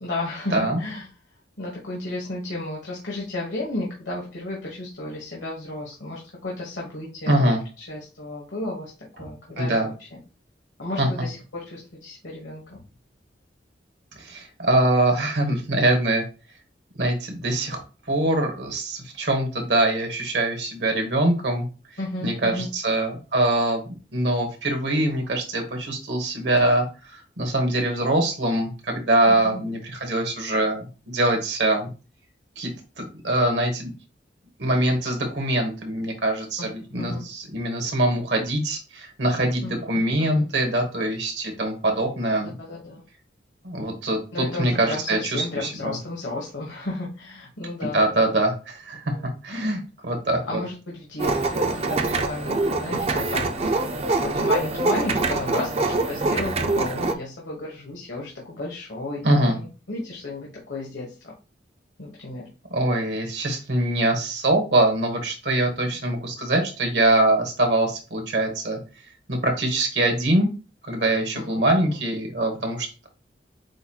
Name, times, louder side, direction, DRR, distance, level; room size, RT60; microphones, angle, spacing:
voice 1, 0.0-1.0 1.6-8.9 9.2-10.2 10.8-12.8 22.0-22.7 29.3-29.6 36.6-36.7 37.0-37.2 39.6-40.5 42.6-43.0 44.3-48.0 49.0-49.3 50.5-59.3 59.9-61.3 62.0-62.5 65.8-65.9 71.3-72.0, left 2 dB, 90° left, -3 dB, 1.3 m, -33 dB
voice 2, 7.3-7.6 9.2-9.3 9.6-9.9 11.0-11.1 14.2-16.2 16.9-17.8 18.1-21.7 22.2-23.8 24.1-31.9 32.6-32.7 33.0-33.9 34.6-42.5 43.6-45.9 47.8-49.1 49.4-50.6 59.2-59.6 62.7-68.8 69.3-70.5 70.8-73.1, right 1 dB, 75° right, 3 dB, 1.2 m, -23 dB
sound 1, 51.2-57.1, right 2 dB, 35° right, 0.4 m, -24 dB
7.8 x 2.9 x 2.3 m, 0.33 s
head